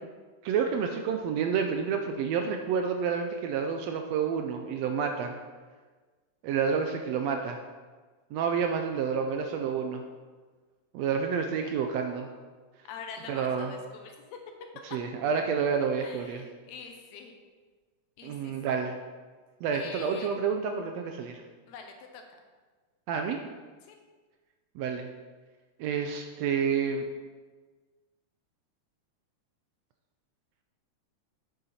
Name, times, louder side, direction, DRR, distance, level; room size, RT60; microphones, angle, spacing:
voice 1, 0.4-5.4 6.4-7.6 8.3-10.0 10.9-12.3 13.3-13.7 14.8-16.4 18.2-19.0 19.6-21.4 23.1-23.4 24.7-25.1 25.8-27.1, right 6 dB, 80° right, 4 dB, 1.5 m, -29 dB
voice 2, 12.9-14.4 16.0-17.3 18.2-18.8 19.7-20.3 21.7-22.4 23.8-24.0, left 5 dB, 70° left, 3 dB, 2.0 m, -45 dB
8.9 x 6.8 x 4.2 m, 1.4 s
omnidirectional pair, 3.6 m